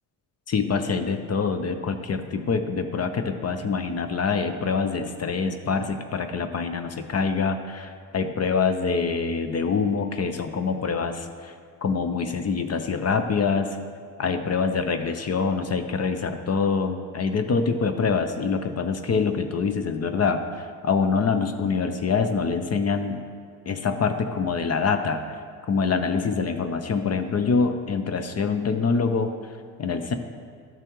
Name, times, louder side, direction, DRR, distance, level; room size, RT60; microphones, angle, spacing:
voice 1, 0.5-11.5 11.8-13.8 14.2-23.2 23.7-25.2 25.7-29.3 29.8-30.1, left 5 dB, 35° left, 8 dB, 0.7 m, -25 dB
12.0 x 6.0 x 3.1 m, 2.2 s
supercardioid pair, 60°, 43 cm